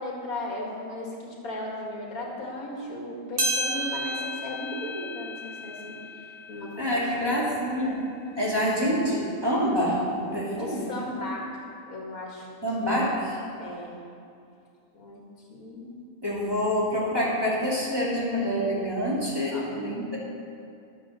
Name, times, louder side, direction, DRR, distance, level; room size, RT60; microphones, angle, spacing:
voice 1, 0.0-6.0 6.5-7.5 8.2-8.4 10.6-12.5 12.8-13.2 13.6-14.0 14.9-15.2 15.5-15.9 19.5-19.7, left 1 dB, 85° left, -3 dB, 2.3 m, -36 dB
sound 1, 3.4-8.0 8.5-8.6 9.4-9.5 10.5-10.6, equal, 40° right, 1.6 m, -33 dB
voice 2, 6.8-8.0 8.4-10.9 12.6-13.3 16.2-20.2, equal, 15° right, -6 dB, 2.4 m, -26 dB
12.0 x 7.0 x 6.5 m, 2.5 s
omnidirectional pair, 1.5 m